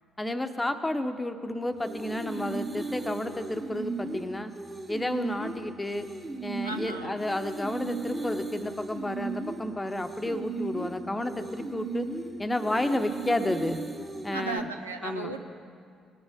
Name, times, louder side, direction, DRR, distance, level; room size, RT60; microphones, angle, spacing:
voice 1, 0.2-4.5 4.9-6.1 6.4-12.1 12.4-13.8 14.2-14.7 15.0-15.3, left 1 dB, 15° left, 8 dB, 0.9 m, -31 dB
sound 1, 1.8-14.6, right 3 dB, 25° right, 1.5 m, -36 dB
voice 2, 6.6-7.2 14.3-15.4, right 3 dB, 90° right, 4 dB, 0.5 m, -36 dB
19.5 x 8.9 x 3.6 m, 2.2 s
figure-of-eight pair, 45°, 0 cm